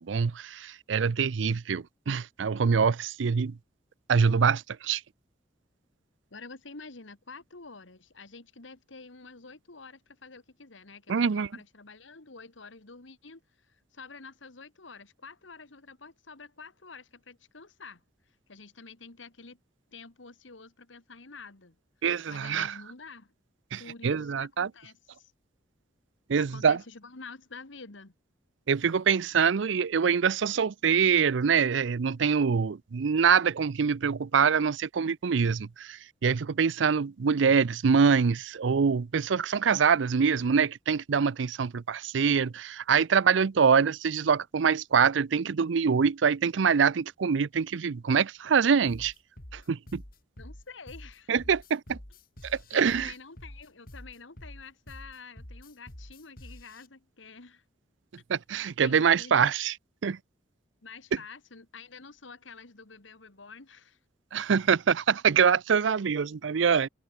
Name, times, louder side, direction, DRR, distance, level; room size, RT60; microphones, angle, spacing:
voice 1, 0.0-3.6 4.1-5.0 11.1-11.5 22.0-22.8 23.7-24.7 26.3-26.8 28.7-49.1 49.5-50.0 51.3-52.0 52.4-53.1 58.3-59.8 60.0-60.2 64.3-66.9, right 6 dB, 75° right, 0.5 m, -25 dB
voice 2, 6.3-13.4 13.7-18.0 18.5-19.6 19.9-21.8 22.3-23.3 23.8-25.3 26.4-28.1 50.4-51.3 52.7-57.6 58.8-59.5 60.8-64.0 66.2-66.4, left 4 dB, 90° left, 2.0 m, -48 dB
sound 1, 48.9-56.9, left 1 dB, 50° left, 4.0 m, -47 dB
head